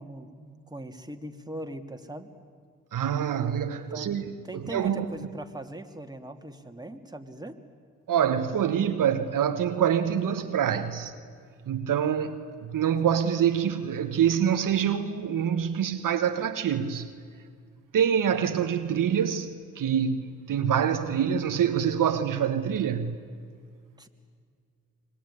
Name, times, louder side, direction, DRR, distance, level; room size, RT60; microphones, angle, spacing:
voice 1, 0.0-2.3 3.7-4.2 4.4-7.6 24.0-24.1, right 1 dB, 10° right, 2.7 m, -40 dB
voice 2, 2.9-5.1 8.1-11.1 11.7-17.1 17.9-23.2, right 8 dB, 65° right, 1.4 m, -26 dB
26.0 x 21.5 x 10.0 m
hypercardioid pair, 45°, 35 cm